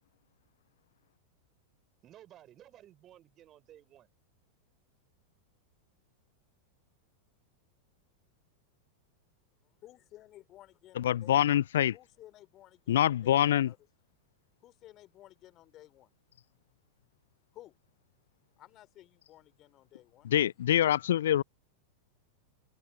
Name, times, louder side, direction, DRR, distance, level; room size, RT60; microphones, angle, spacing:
voice 1, 2.0-4.1, right 12 dB, 30° right, 6.5 m, -55 dB
voice 2, 9.8-11.6 11.9-13.8 14.6-16.1 17.5-17.8 18.6-20.3, left 14 dB, 35° left, 4.4 m, -55 dB
voice 3, 10.9-11.9 12.9-13.7 20.2-21.4, left 11 dB, 60° left, 0.5 m, -25 dB
figure-of-eight pair, 90°, 0 cm